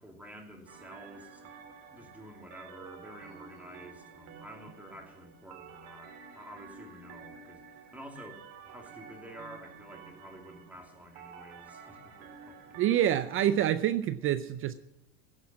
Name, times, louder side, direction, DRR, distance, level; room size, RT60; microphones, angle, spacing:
voice 1, 0.0-1.5 1.9-12.8, equal, 5° right, 1 dB, 2.7 m, -50 dB
sound 1, 0.7-13.6, right 6 dB, 50° right, 2.3 m, -51 dB
voice 2, 12.8-14.7, right 11 dB, 30° right, 13 dB, 0.5 m, -27 dB
16.5 x 6.3 x 8.5 m, 0.85 s
supercardioid pair, 115°, 45 cm